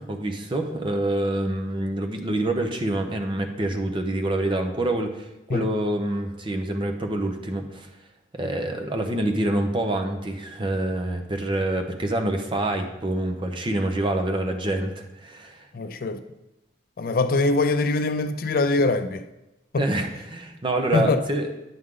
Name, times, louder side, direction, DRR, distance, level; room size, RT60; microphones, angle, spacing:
voice 1, 0.0-7.9 8.3-15.6 19.8-21.5, right 1 dB, 30° right, 0.8 m, -26 dB
voice 2, 15.7-16.2 17.0-19.2 19.7-19.9 20.9-21.2, left 3 dB, 55° left, 0.4 m, -23 dB
9.5 x 6.4 x 3.7 m
head